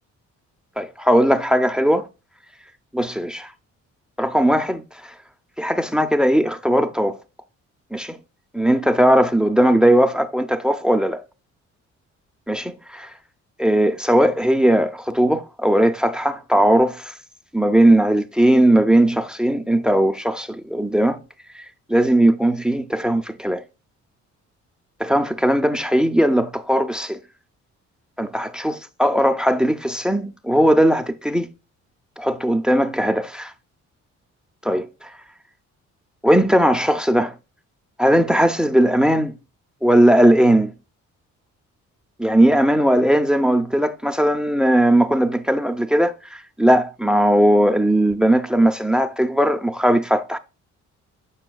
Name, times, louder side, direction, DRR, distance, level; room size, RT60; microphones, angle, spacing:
voice 1, 0.8-2.1 2.9-3.5 4.2-5.1 5.6-7.2 7.9-8.2 8.5-11.2 12.5-13.1 13.6-17.1 17.5-21.2 21.5-23.6 25.0-27.2 28.2-31.5 32.2-33.5 34.6-35.1 36.2-37.3 38.0-39.3 39.8-40.7 42.2-50.4, right 1 dB, 5° right, 0.4 m, -18 dB
7.7 x 5.7 x 2.3 m
cardioid pair, 90°, 30 cm